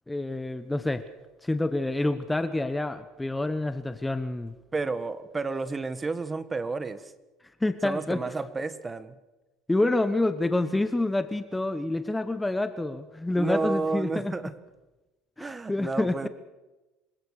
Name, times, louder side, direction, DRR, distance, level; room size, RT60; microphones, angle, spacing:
voice 1, 0.1-1.0 1.4-4.5 7.6-8.2 9.7-14.3 15.4-16.2, left 2 dB, 10° left, 11 dB, 1.1 m, -27 dB
voice 2, 4.7-7.1 7.8-9.1 13.4-14.5 15.4-16.3, right 3 dB, 20° right, 13 dB, 1.5 m, -31 dB
27.5 x 17.0 x 6.6 m, 1.1 s
supercardioid pair, 100°, 0 cm